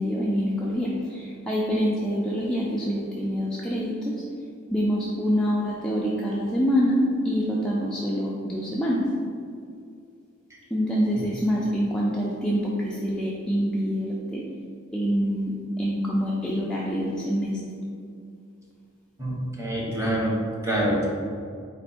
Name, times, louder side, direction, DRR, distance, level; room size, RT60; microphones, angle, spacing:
voice 1, 0.0-4.1 4.7-9.0 10.7-14.4 14.9-17.6, equal, 5° left, -6 dB, 0.4 m, -26 dB
voice 2, 19.2-20.3 20.6-21.1, right 1 dB, 15° right, -5 dB, 1.0 m, -26 dB
4.4 x 2.6 x 4.2 m, 2.3 s
head